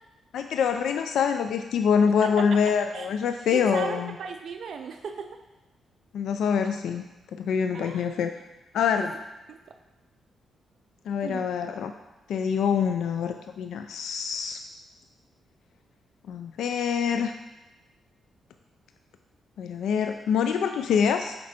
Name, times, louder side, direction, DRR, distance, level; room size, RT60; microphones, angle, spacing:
voice 1, 0.3-4.1 6.1-7.0 7.4-8.3 8.7-9.1 11.1-11.9 12.3-14.6 16.3-17.3 19.6-21.3, left 7 dB, 85° left, 6 dB, 0.3 m, -25 dB
voice 2, 2.2-2.6 2.9-3.1 3.5-5.3 7.7-8.0 9.0-9.1 9.5-9.6 11.2-11.7, right 6 dB, 65° right, 6 dB, 0.4 m, -36 dB
7.5 x 4.5 x 4.2 m, 1.1 s
cardioid pair, 100°, 0 cm